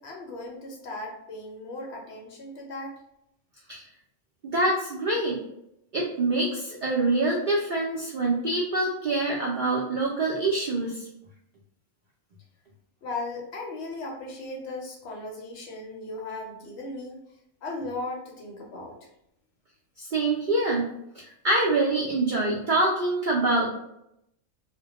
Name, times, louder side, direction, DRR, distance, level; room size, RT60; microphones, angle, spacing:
voice 1, 0.0-2.9 13.0-17.2 17.6-19.0, left 2 dB, 65° left, 0 dB, 0.7 m, -37 dB
voice 2, 4.5-5.4 5.9-11.1 20.0-20.9 21.1-23.7, right 2 dB, 70° right, -3 dB, 0.4 m, -25 dB
2.1 x 2.1 x 2.8 m, 0.79 s
omnidirectional pair, 1.4 m